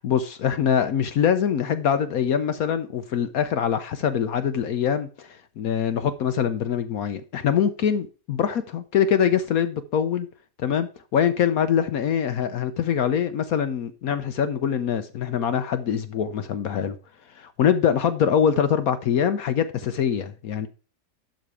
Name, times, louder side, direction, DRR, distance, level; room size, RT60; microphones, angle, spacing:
voice 1, 0.0-10.3 10.6-17.0 17.4-20.7, left 8 dB, 65° left, 1.1 m, -24 dB
11.5 x 4.1 x 4.7 m
omnidirectional pair, 1.8 m